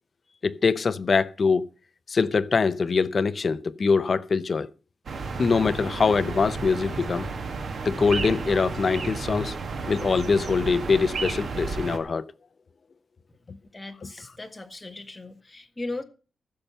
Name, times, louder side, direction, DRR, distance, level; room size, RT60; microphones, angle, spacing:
voice 1, 0.4-1.6 2.1-4.7 5.4-7.3 7.8-9.6 9.9-12.3 13.5-13.6, left 5 dB, 40° left, 0.6 m, -23 dB
sound 1, 5.1-12.0, right 4 dB, 55° right, 2.0 m, -32 dB
voice 2, 13.7-16.0, left 2 dB, 15° left, 1.7 m, -37 dB
15.0 x 6.8 x 5.5 m
wide cardioid pair, 160°, 0 cm